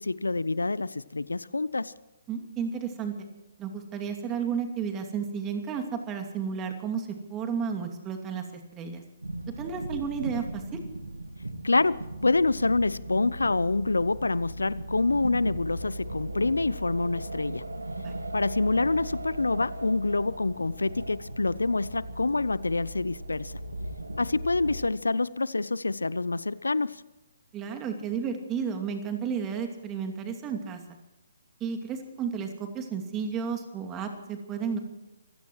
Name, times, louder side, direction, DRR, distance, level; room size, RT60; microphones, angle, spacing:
voice 1, 0.0-1.9 11.6-17.6 18.3-23.5 24.2-27.0, left 3 dB, 80° left, 0.6 m, -26 dB
voice 2, 2.3-3.1 3.6-9.0 9.6-10.6 18.0-18.2 27.5-30.8 31.6-34.8, right 6 dB, 20° right, 2.5 m, -32 dB
sound 1, 9.2-24.9, right 1 dB, 85° right, 1.6 m, -38 dB
27.0 x 16.5 x 3.1 m
figure-of-eight pair, 135°, 0 cm